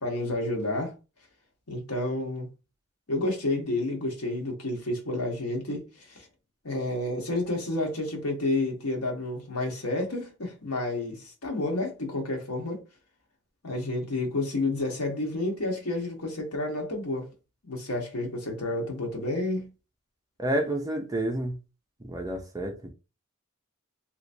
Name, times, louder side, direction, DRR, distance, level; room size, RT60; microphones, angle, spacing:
voice 1, 0.0-0.9 1.7-2.5 3.1-6.3 6.6-12.8 13.6-17.3 17.6-19.7, left 2 dB, 90° left, 1.2 m, -30 dB
voice 2, 20.4-21.5 22.0-22.7, right 1 dB, 15° right, 0.6 m, -29 dB
3.2 x 2.9 x 2.6 m
head